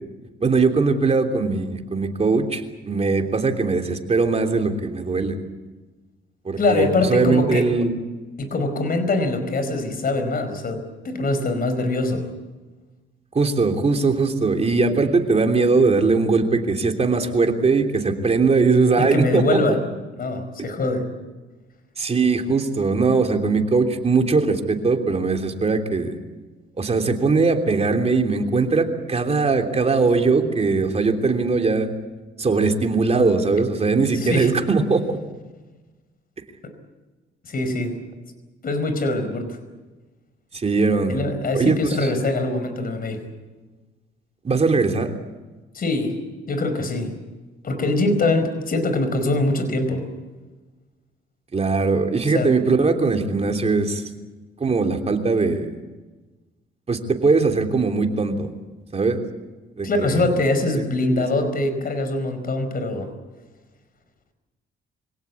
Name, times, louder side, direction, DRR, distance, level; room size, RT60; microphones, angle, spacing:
voice 1, 0.4-5.4 6.4-8.0 13.3-19.6 22.0-26.1 26.8-31.9 32.4-35.2 40.5-41.2 41.5-42.1 44.4-45.1 51.5-54.1 54.6-55.7 56.9-58.5 58.9-59.2 59.8-60.2 60.8-60.9 61.1-61.2, right 4 dB, 30° right, 4 dB, 3.2 m, -20 dB
voice 2, 6.6-7.7 8.4-12.2 19.0-19.8 20.2-21.1 34.1-34.5 36.6-36.7 37.4-38.0 38.6-39.6 41.1-43.2 45.7-46.2 46.5-47.1 47.6-50.1 52.3-52.5 59.8-63.1, left 2 dB, 45° left, 8 dB, 5.0 m, -23 dB
25.5 x 17.5 x 8.5 m, 1.2 s
cardioid pair, 90°, 20 cm